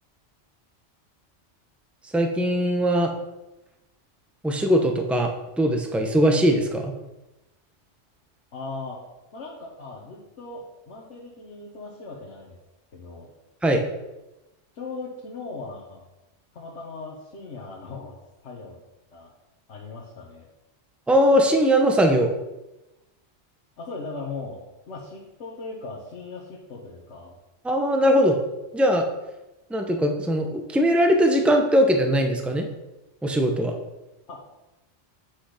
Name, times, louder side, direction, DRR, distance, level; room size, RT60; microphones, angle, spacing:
voice 1, 2.1-3.1 4.4-5.3 5.6-6.9 13.6-13.8 21.1-22.3 27.6-28.4 28.7-29.1 29.7-32.7 33.2-33.7, equal, ahead, 3 dB, 0.8 m, -20 dB
voice 2, 8.5-9.0 9.3-12.6 12.9-13.3 14.7-16.1 16.5-18.1 18.4-18.8 19.1-19.3 19.7-20.5 23.8-24.6 24.9-27.3 34.3-34.4, left 3 dB, 80° left, -3 dB, 1.6 m, -38 dB
8.5 x 6.0 x 5.0 m, 0.99 s
omnidirectional pair, 1.2 m